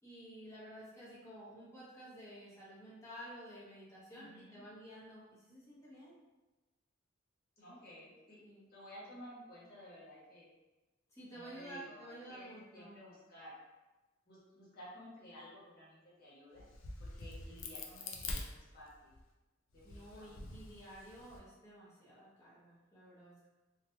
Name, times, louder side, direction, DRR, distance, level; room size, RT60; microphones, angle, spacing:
voice 1, 0.0-6.2 8.4-8.6 11.1-13.0 19.8-23.5, equal, 15° left, -9 dB, 0.9 m, -52 dB
voice 2, 4.1-4.6 7.6-8.4 8.7-10.5 11.3-13.5 14.3-16.6 17.0-19.1 19.7-20.5, equal, 50° left, -8 dB, 1.3 m, -54 dB
Crack, 16.6-19.2 19.7-21.4, left 3 dB, 90° left, 0.5 m, -45 dB
2.9 x 2.6 x 2.7 m, 1.1 s
head